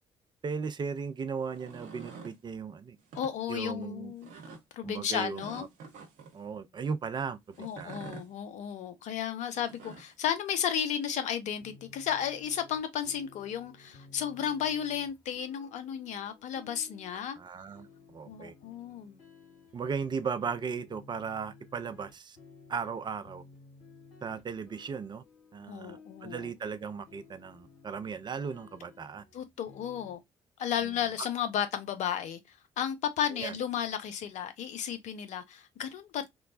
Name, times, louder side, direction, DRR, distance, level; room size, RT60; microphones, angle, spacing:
voice 1, 0.4-3.0 3.5-4.1 4.8-5.7 6.3-8.2 17.4-18.5 19.7-22.4 22.7-23.4 24.2-25.2 25.5-29.2 33.3-33.5, right 6 dB, 30° right, 0.5 m, -37 dB
sound 1, 1.4-2.4 3.0-3.3 4.2-4.6 5.4-6.4 7.5-8.3 9.5-10.1, right 5 dB, 60° right, 0.8 m, -47 dB
voice 2, 3.1-4.3 4.7-5.7 7.6-17.4 18.3-19.2 25.7-26.5 29.3-30.2 30.6-36.3, left 9 dB, 55° left, 0.6 m, -33 dB
sound 2, 11.6-30.2, left 4 dB, 80° left, 1.1 m, -56 dB
3.0 x 2.1 x 2.5 m
figure-of-eight pair, 45°, 14 cm